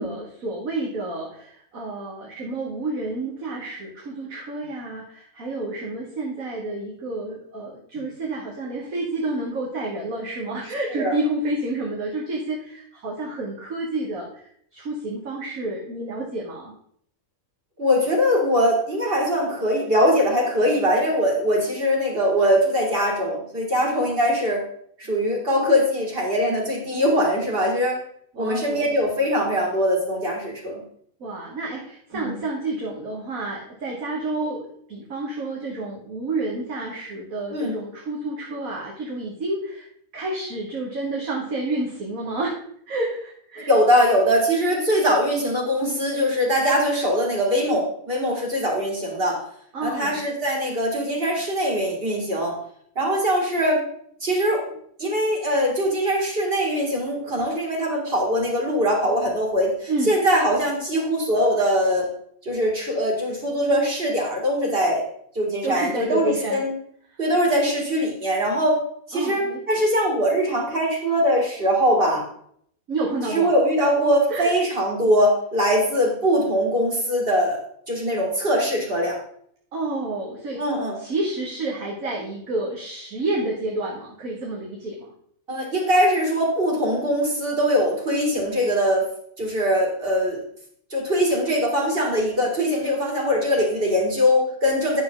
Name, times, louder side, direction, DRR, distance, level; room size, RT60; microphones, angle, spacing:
voice 1, 0.0-14.4 14.7-16.7 28.3-28.9 31.2-34.6 34.9-39.9 40.1-42.6 42.9-43.7 49.7-50.2 59.9-60.1 65.6-66.6 69.1-69.6 72.9-73.5 73.8-73.9 74.3-74.5 79.7-80.6 81.0-85.1, right 2 dB, 70° right, -2 dB, 1.9 m, -29 dB
voice 2, 10.6-11.1 17.8-24.6 25.0-28.0 28.4-30.8 32.1-32.3 37.5-37.8 43.7-49.4 49.8-52.6 53.0-53.8 54.2-54.6 55.0-62.1 62.4-65.1 65.3-66.7 67.2-68.8 69.1-72.2 73.3-77.6 77.9-79.2 80.6-81.0 85.5-89.1 89.4-90.4 90.9-95.0, equal, 40° right, -1 dB, 2.6 m, -22 dB
9.4 x 7.0 x 3.9 m, 0.66 s
omnidirectional pair, 1.5 m